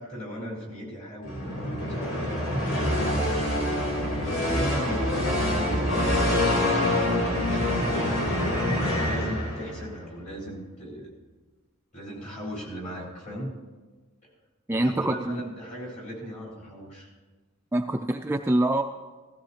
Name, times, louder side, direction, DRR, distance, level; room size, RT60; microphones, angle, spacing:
voice 1, 0.0-2.5 3.0-8.1 8.8-11.1 11.9-13.5 14.7-17.1, equal, 35° left, -3 dB, 4.2 m, -38 dB
sound 1, 1.2-9.9, left 1 dB, 80° left, 2.9 m, -26 dB
voice 2, 14.7-15.4 17.7-18.8, right 1 dB, 10° right, 4 dB, 0.3 m, -25 dB
16.5 x 14.5 x 2.8 m, 1.3 s
head